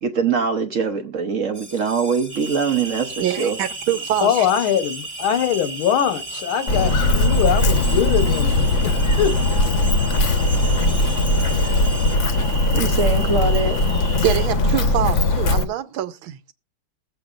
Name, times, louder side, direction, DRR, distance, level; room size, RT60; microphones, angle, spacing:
voice 1, 0.0-3.6 12.7-13.8, right 5 dB, 55° right, 0.9 m, -23 dB
sound 1, 1.5-12.2, right 2 dB, 15° right, 1.1 m, -39 dB
sound 2, 2.3-14.5, right 3 dB, 30° right, 1.1 m, -34 dB
voice 2, 3.2-4.5 10.5-10.7 14.2-16.5, right 11 dB, 85° right, 1.6 m, -25 dB
voice 3, 4.2-9.3, left 9 dB, 90° left, 1.7 m, -22 dB
Walk footsteps, 6.7-15.6, left 2 dB, 50° left, 1.0 m, -19 dB
21.0 x 7.8 x 2.4 m
omnidirectional pair, 2.2 m